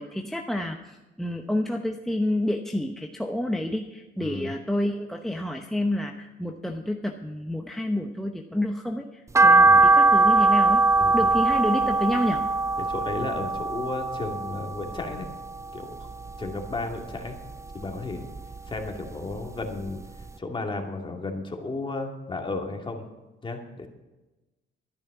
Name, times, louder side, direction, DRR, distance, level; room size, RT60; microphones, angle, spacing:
voice 1, 0.0-10.8 11.1-12.4, left 1 dB, ahead, 2 dB, 1.0 m, -29 dB
voice 2, 4.2-4.5 9.6-9.9 11.0-11.3 12.8-15.3 15.7-16.1 16.4-17.4 17.7-18.2 18.7-20.0 20.4-23.1 23.4-23.9, left 3 dB, 25° left, 2 dB, 2.4 m, -33 dB
sound 1, 9.3-15.7 16.0-17.2 17.5-18.9 19.3-19.4 19.9-20.0 20.2-20.3, right 3 dB, 15° right, 0.5 m, -21 dB
13.0 x 10.5 x 6.1 m, 1.1 s
cardioid pair, 90°, 20 cm